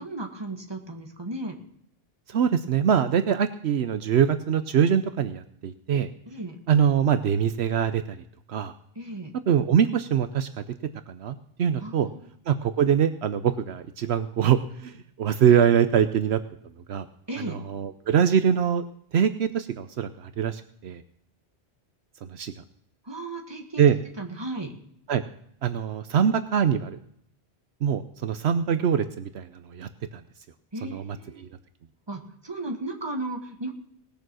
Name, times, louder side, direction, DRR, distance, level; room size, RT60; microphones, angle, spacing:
voice 1, 0.0-1.6 6.3-6.6 9.0-9.3 11.8-12.2 17.3-17.6 23.0-23.9 24.2-24.7 30.7-31.4 32.1-33.7, right 2 dB, 25° right, 3 dB, 1.8 m, -35 dB
voice 2, 2.3-6.1 6.7-8.2 8.5-8.7 9.5-10.6 11.1-12.1 12.5-16.4 16.9-17.0 17.4-18.8 19.1-21.0 22.2-22.5 23.8-24.0 25.1-25.2 25.6-27.0 27.8-30.2 30.8-31.5, right 8 dB, 75° right, 10 dB, 1.0 m, -23 dB
19.0 x 6.9 x 6.2 m, 0.69 s
omnidirectional pair, 1.1 m